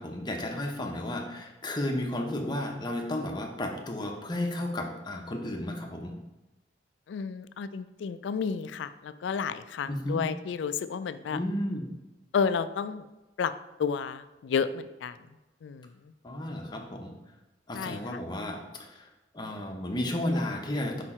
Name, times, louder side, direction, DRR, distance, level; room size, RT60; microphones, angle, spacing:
voice 1, 0.0-6.2 9.9-10.2 11.3-11.9 16.2-17.1 17.7-18.6 18.9-19.0 19.3-21.0, left 1 dB, 25° left, 2 dB, 0.8 m, -33 dB
voice 2, 7.1-11.4 12.3-13.0 13.4-13.5 13.8-15.2 15.6-15.9 17.7-18.0, left 6 dB, 70° left, 12 dB, 0.3 m, -31 dB
4.8 x 4.5 x 4.3 m, 1.0 s
head